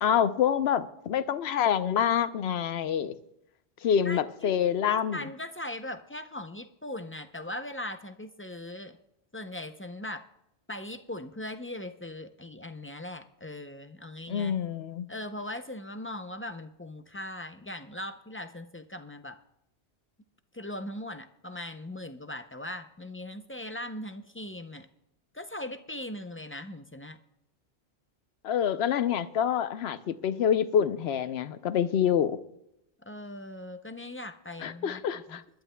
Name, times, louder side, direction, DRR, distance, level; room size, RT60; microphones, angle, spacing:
voice 1, 0.0-3.1 3.8-5.3 14.3-15.1 28.4-32.4 34.6-35.4, left 8 dB, 75° left, 0.9 m, -26 dB
voice 2, 4.0-4.6 4.9-9.0 9.3-10.2 10.7-14.5 15.1-19.4 20.5-24.9 25.3-27.2 33.1-35.0 35.3-35.4, left 1 dB, 20° left, 0.3 m, -39 dB
25.5 x 11.5 x 2.2 m
omnidirectional pair, 1.1 m